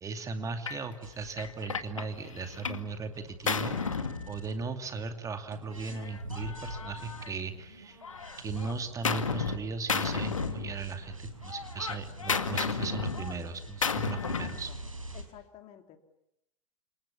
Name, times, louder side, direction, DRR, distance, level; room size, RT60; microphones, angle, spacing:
voice 1, 0.0-8.0 8.4-14.7, right 4 dB, 20° right, 7 dB, 2.4 m, -37 dB
Gunshot gunfire, 0.7-0.9 1.4-2.9 3.2-4.9 5.8-7.7 8.0-9.6 9.9-11.1 11.4-14.6, left 5 dB, 75° left, 2.1 m, -33 dB
sound 1, 1.0-5.1 5.5-15.2, right 1 dB, 85° right, 5.5 m, -46 dB
voice 2, 14.2-14.8 15.1-16.0, left 11 dB, 35° left, 6 dB, 2.9 m, -51 dB
29.5 x 27.5 x 7.1 m, 0.80 s
figure-of-eight pair, 95°, 17 cm